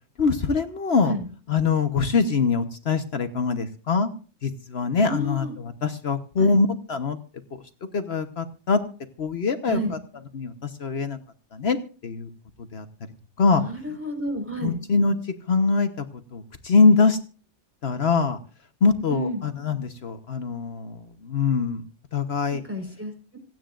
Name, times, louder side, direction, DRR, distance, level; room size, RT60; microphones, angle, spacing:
voice 1, 0.2-1.1 1.5-4.1 4.4-5.5 5.8-7.2 7.9-8.8 9.2-9.8 10.3-11.2 11.5-11.8 12.0-12.3 12.7-12.8 13.4-13.6 14.6-15.1 15.5-16.0 16.3-17.2 17.8-18.4 18.8-21.0 21.2-21.8 22.1-22.6, left 4 dB, 65° left, 8 dB, 1.3 m, -23 dB
voice 2, 5.0-5.5 6.4-6.6 9.7-10.0 13.5-14.8 19.1-19.4 22.5-23.4, equal, 10° right, 3 dB, 4.4 m, -31 dB
26.5 x 9.2 x 2.5 m, 0.39 s
omnidirectional pair, 1.2 m